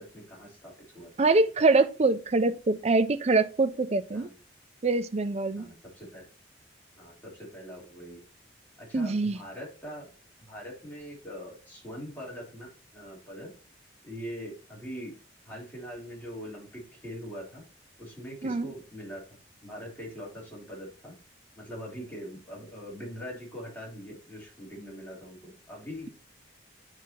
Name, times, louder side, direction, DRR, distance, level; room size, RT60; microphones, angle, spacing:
voice 1, 0.0-1.1 4.1-4.3 5.6-6.2 7.0-8.2 8.8-10.1 10.5-13.5 14.0-15.1 15.4-17.6 18.0-19.2 19.6-21.1 21.5-26.1, equal, 10° left, 3.3 m, -42 dB
voice 2, 1.2-4.3 4.8-5.7 8.9-9.4 18.4-18.7, right 3 dB, 35° right, 0.4 m, -24 dB
9.3 x 4.9 x 2.8 m
head